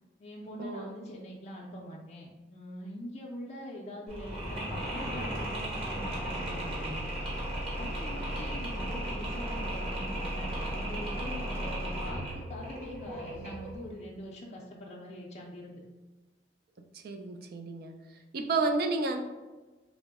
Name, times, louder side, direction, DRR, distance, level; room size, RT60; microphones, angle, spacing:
voice 1, 0.2-7.2 7.7-15.8, left 1 dB, 40° left, -3 dB, 0.4 m, -43 dB
Mechanisms, 4.1-13.8, right 1 dB, 35° right, 1.1 m, -35 dB
voice 2, 16.9-18.0 18.3-19.2, right 3 dB, 60° right, 5 dB, 0.4 m, -31 dB
3.7 x 2.0 x 3.4 m, 1.2 s
head